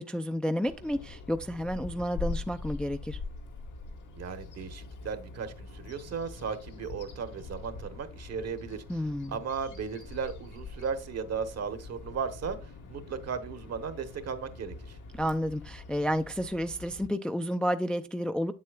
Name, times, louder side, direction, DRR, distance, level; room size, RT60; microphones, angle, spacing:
voice 1, 0.0-3.2 8.9-9.4 15.1-18.5, equal, 5° left, 0.4 m, -31 dB
Bird vocalization bird call bird song, 0.7-17.1, left 3 dB, 80° left, 1.7 m, -43 dB
voice 2, 4.2-15.0, right 6 dB, 55° right, 1.1 m, -36 dB
8.2 x 7.5 x 2.3 m
cardioid pair, 90°, 30 cm